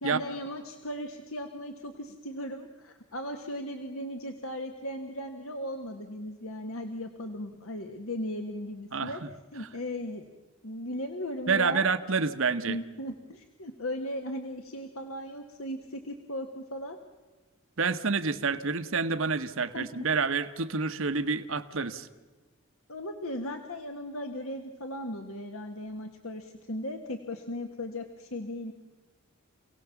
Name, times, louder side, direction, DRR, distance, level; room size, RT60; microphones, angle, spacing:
voice 1, 0.0-9.2 9.5-10.3 10.6-11.9 12.7-17.0 18.5-18.6 19.7-20.0 22.9-28.7, left 1 dB, 80° left, 5 dB, 1.5 m, -37 dB
voice 2, 8.9-9.3 11.5-12.8 17.8-22.1, right 4 dB, 70° right, 9 dB, 1.1 m, -28 dB
28.0 x 18.0 x 7.1 m, 1.3 s
head